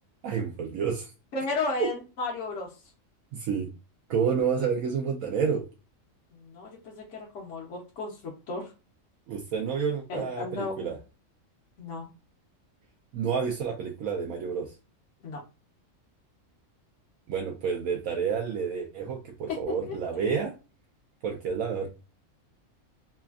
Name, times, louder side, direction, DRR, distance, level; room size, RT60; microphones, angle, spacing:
voice 1, 0.2-1.1 3.3-3.7 4.1-5.6 9.3-11.0 13.1-14.7 17.3-20.5 21.2-21.9, right 6 dB, 80° right, 1 dB, 1.0 m, -29 dB
voice 2, 1.3-2.8 6.3-8.7 10.1-10.9 11.8-12.1 15.2-15.4 19.5-19.6 19.9-20.0, left 3 dB, 65° left, -3 dB, 1.0 m, -34 dB
3.3 x 2.3 x 2.3 m, 0.30 s
omnidirectional pair, 1.4 m